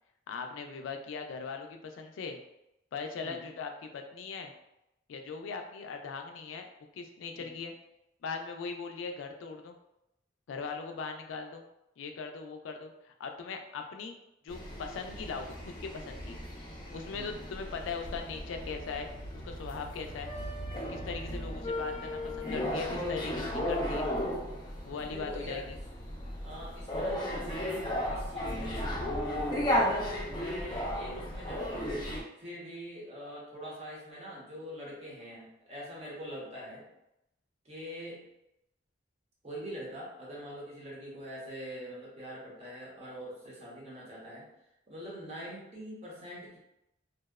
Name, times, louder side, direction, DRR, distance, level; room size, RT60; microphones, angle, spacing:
voice 1, 0.3-2.4 2.9-4.5 5.1-6.7 6.9-7.7 8.2-9.7 10.5-11.6 12.0-14.2 14.4-16.4 16.9-19.1 19.4-20.3 20.9-24.1 24.8-25.7 31.0-31.3, left 5 dB, 90° left, 5 dB, 0.3 m, -40 dB
sound 1, 14.5-32.2, left 1 dB, 25° left, 0.4 m, -35 dB
voice 2, 17.1-17.5 25.1-25.8 26.4-28.8 30.2-36.8 37.6-38.2 39.4-44.5 44.9-46.6, equal, 35° right, -4 dB, 0.7 m, -44 dB
2.7 x 2.0 x 2.3 m, 0.85 s
head